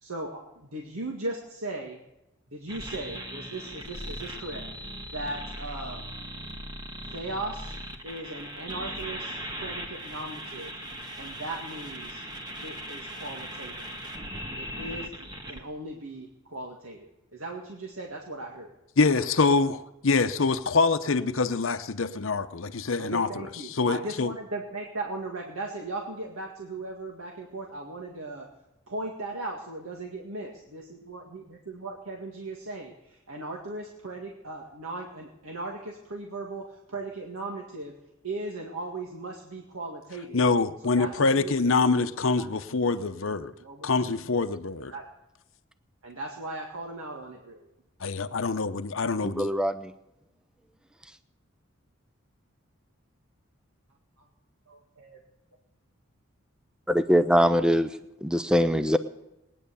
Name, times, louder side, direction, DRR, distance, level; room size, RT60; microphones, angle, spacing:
voice 1, 0.0-2.0 2.5-4.6 5.1-6.0 7.1-7.7 8.0-10.7 11.2-12.2 12.6-13.9 14.6-18.7 19.1-19.2 23.0-28.5 28.9-37.9 38.2-40.4 40.8-41.5 42.0-42.6 43.6-44.3 44.9-45.0 46.0-47.7 54.7-55.2, right 2 dB, 85° right, 1.9 m, -38 dB
sound 1, 2.7-15.6, equal, 20° right, 1.5 m, -39 dB
voice 2, 19.0-23.3 23.7-24.3 40.3-43.5 43.8-44.9 48.0-49.5, left 4 dB, 70° left, 0.8 m, -25 dB
voice 3, 49.2-49.9 56.9-57.9 58.2-59.0, equal, 5° right, 0.5 m, -22 dB
20.0 x 9.9 x 6.9 m
head